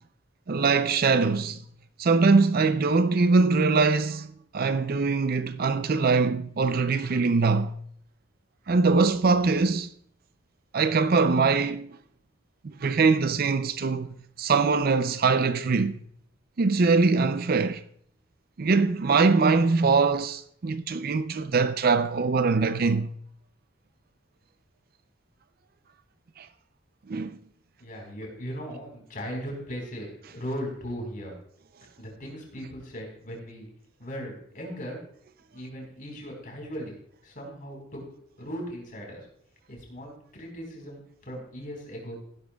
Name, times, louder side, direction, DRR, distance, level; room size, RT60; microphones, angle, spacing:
voice 1, 0.5-1.6 2.0-4.3 4.5-7.7 8.7-9.9 10.7-11.9 12.6-16.0 16.6-17.8 18.6-23.1 26.4-26.5 27.1-27.4, right 4 dB, 50° right, 0.5 m, -22 dB
voice 2, 27.8-31.3 32.0-33.7 34.0-35.0 35.5-36.9 37.2-38.0 38.4-39.2 39.7-42.2, equal, 45° left, 4.2 m, -38 dB
15.0 x 11.5 x 2.3 m
head